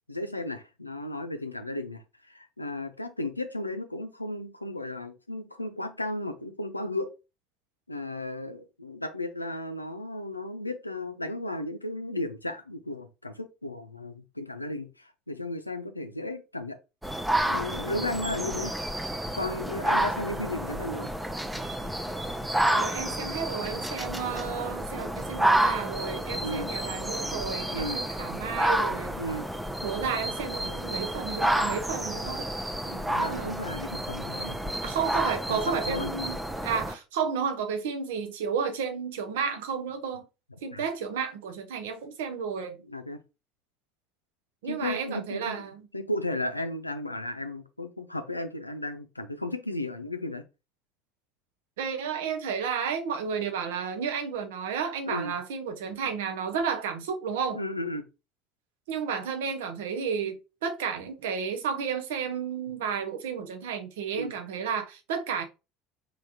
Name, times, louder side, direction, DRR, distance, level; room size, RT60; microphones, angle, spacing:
voice 1, 0.1-7.1 7.9-16.8 17.5-18.7 19.4-21.1 26.4-26.7 27.7-28.0 29.2-29.5 32.9-34.6 35.5-36.1 40.7-40.9 42.9-43.2 44.6-45.7 45.9-50.4 55.0-55.3 57.5-58.1 64.1-64.3, left 1 dB, 90° left, 0.5 m, -34 dB
sound 1, 17.0-36.9, right 1 dB, 5° right, 0.6 m, -30 dB
voice 2, 22.7-29.2 29.8-32.5 33.2-33.5 34.8-40.3 40.6-42.8 44.6-45.9 51.8-57.6 58.9-65.4, right 6 dB, 65° right, 0.8 m, -32 dB
3.7 x 3.4 x 2.9 m
figure-of-eight pair, 65°, 0 cm